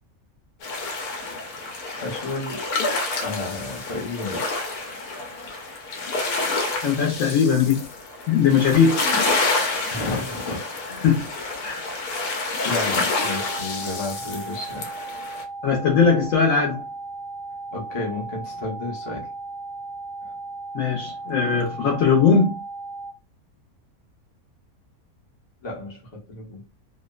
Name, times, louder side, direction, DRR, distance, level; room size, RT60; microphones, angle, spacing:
sound 1, 0.6-15.4, left 3 dB, 85° left, 1.2 m, -28 dB
voice 1, 2.0-2.6 3.2-4.4 9.9-10.6 10.9-11.1 12.6-14.9 17.7-19.3 20.2-20.3 25.6-26.6, left 2 dB, 25° left, 0.7 m, -32 dB
voice 2, 6.8-7.8 8.3-9.0 11.0-11.2 11.6-11.9 15.6-16.8 20.7-22.6, left 6 dB, 65° left, 1.1 m, -19 dB
sound 2, 13.1-23.1, right 3 dB, 80° right, 1.2 m, -36 dB
2.9 x 2.0 x 2.3 m
omnidirectional pair, 1.5 m